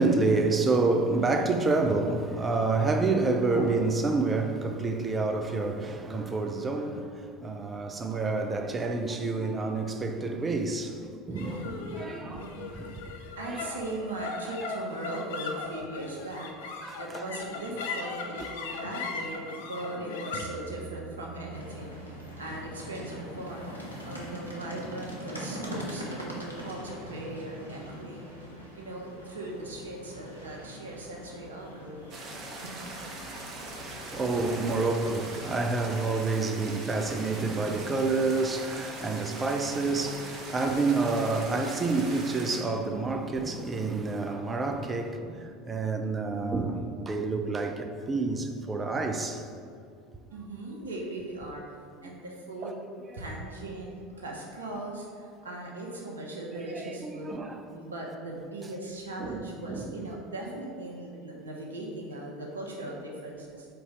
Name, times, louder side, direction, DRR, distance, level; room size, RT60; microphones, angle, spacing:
voice 1, 0.0-7.1 7.4-13.0 13.4-13.7 14.6-14.7 16.8-17.2 18.4-18.5 33.5-49.4 52.6-52.7 57.0-57.6 59.2-59.9, right 3 dB, 20° right, 0.6 m, -28 dB
sound 1, 11.3-27.9, left 3 dB, 65° left, 0.5 m, -40 dB
voice 2, 11.3-11.9 12.2-12.8 13.0-16.5 16.9-28.5 28.8-32.1 32.6-32.7 50.3-51.6 52.0-52.8 53.1-63.7, right 2 dB, 75° right, 1.0 m, -39 dB
sound 2, 21.5-36.2, equal, 90° left, 0.8 m, -43 dB
sound 3, 32.1-42.6, right 2 dB, 40° right, 1.0 m, -41 dB
4.6 x 4.1 x 5.2 m
figure-of-eight pair, 70°, 0 cm